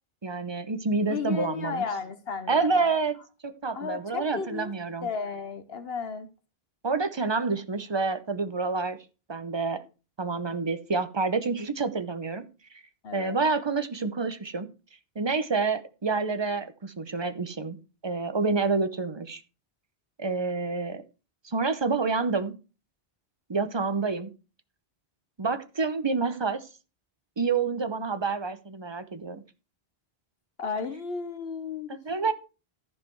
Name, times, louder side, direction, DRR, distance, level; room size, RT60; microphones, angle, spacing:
voice 1, 0.2-1.8 2.5-3.1 3.4-5.1 6.8-9.0 9.3-9.8 10.2-12.5 13.1-14.7 15.2-17.8 18.0-19.4 20.2-21.0 21.4-22.5 23.5-24.3 25.4-26.6 27.4-29.4 31.9-32.3, right 4 dB, 30° right, 0.8 m, -28 dB
voice 2, 1.1-3.0 3.7-4.7 5.0-6.3 13.0-13.4 30.6-32.0, left 5 dB, 70° left, 1.1 m, -33 dB
14.0 x 5.0 x 4.6 m
omnidirectional pair, 1.1 m